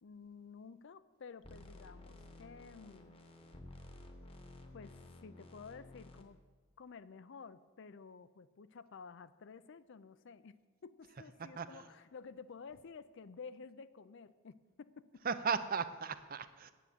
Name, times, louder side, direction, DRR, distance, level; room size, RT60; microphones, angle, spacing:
voice 1, 0.0-3.2 4.7-6.4 6.8-15.2, left 5 dB, 55° left, 15 dB, 0.4 m, -52 dB
sound 1, 1.4-6.2, left 1 dB, 25° left, 1.0 m, -54 dB
voice 2, 11.4-11.8 15.2-16.7, right 6 dB, 40° right, 12 dB, 0.5 m, -36 dB
9.3 x 8.5 x 7.8 m, 1.4 s
head